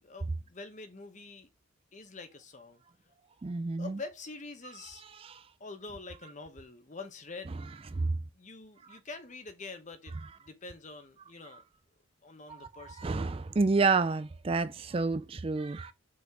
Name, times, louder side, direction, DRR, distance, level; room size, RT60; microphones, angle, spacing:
voice 1, 0.0-1.5 1.9-2.8 3.8-5.0 5.6-7.6 8.3-11.6 12.2-13.1, left 3 dB, 35° left, 1.0 m, -46 dB
voice 2, 3.4-4.0 5.2-5.4 7.9-8.2 12.9-15.9, right 3 dB, 25° right, 0.3 m, -29 dB
5.4 x 4.3 x 4.8 m
head